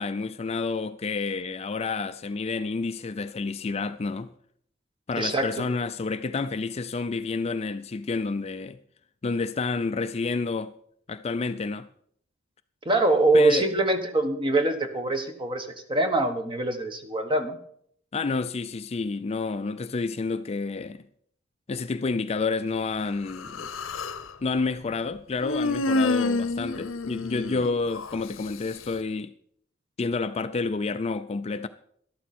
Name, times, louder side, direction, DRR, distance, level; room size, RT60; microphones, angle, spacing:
voice 1, 0.0-4.3 5.1-8.8 9.2-10.7 11.1-11.9 13.3-13.7 18.1-21.0 21.7-23.7 24.4-29.3 30.0-31.7, left 4 dB, 30° left, 0.4 m, -29 dB
voice 2, 5.2-5.6 12.8-17.6, right 2 dB, 25° right, 1.3 m, -24 dB
Human voice, 23.3-24.3 25.4-28.2, left 2 dB, 75° left, 0.7 m, -28 dB
12.5 x 12.0 x 4.3 m
head